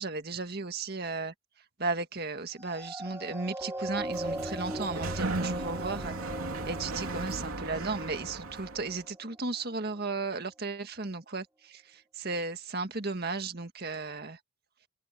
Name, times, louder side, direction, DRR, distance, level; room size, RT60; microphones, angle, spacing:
voice 1, 0.0-1.3 1.8-6.1 6.6-14.4, right 3 dB, 45° right, 1.9 m, -35 dB
sound 1, 2.7-9.4 10.0-10.1, right 1 dB, 10° right, 6.5 m, -40 dB
Sliding door, 3.8-9.0, right 2 dB, 80° right, 3.1 m, -36 dB
head